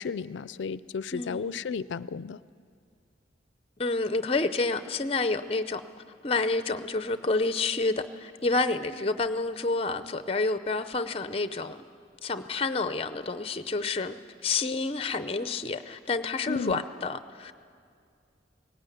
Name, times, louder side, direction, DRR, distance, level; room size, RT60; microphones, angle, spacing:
voice 1, 0.0-2.4 16.5-16.8, left 6 dB, 75° left, 18 dB, 0.4 m, -33 dB
voice 2, 1.1-1.5 3.8-5.8 6.2-11.8 12.2-14.2 14.4-17.5, left 3 dB, 30° left, 12 dB, 0.6 m, -29 dB
18.0 x 16.5 x 9.2 m, 2.3 s
head